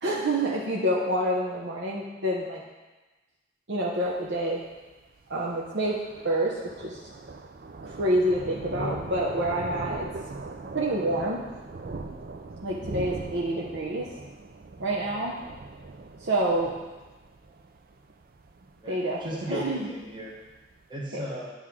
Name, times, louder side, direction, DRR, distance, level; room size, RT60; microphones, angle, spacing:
voice 1, 0.0-2.6 3.7-4.6 5.3-6.0 6.2-7.0 7.8-10.1 10.7-11.4 12.6-14.1 14.8-15.4 16.2-16.7 18.9-19.2 19.5-19.9 21.1-21.2, right 1 dB, 70° right, -4 dB, 0.9 m, -27 dB
Thunder, 3.9-20.9, right 3 dB, 50° right, 0.5 m, -41 dB
voice 2, 18.8-20.3 20.9-21.5, equal, 25° right, -4 dB, 1.2 m, -37 dB
9.8 x 3.6 x 6.0 m, 1.2 s
head